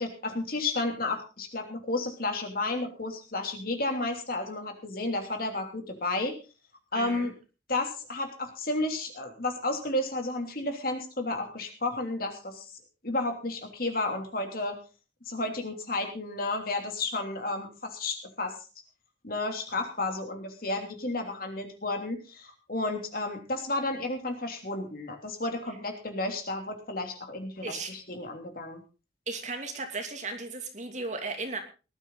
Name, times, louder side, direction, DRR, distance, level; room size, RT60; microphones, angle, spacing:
voice 1, 0.0-6.3 6.9-7.3 7.7-12.7 13.0-14.8 15.3-18.6 19.2-28.8, left 2 dB, 55° left, 4 dB, 3.1 m, -32 dB
voice 2, 6.9-7.3 27.6-27.9 29.3-31.6, right 3 dB, 40° right, 4 dB, 2.8 m, -35 dB
18.5 x 12.0 x 4.0 m, 0.33 s
head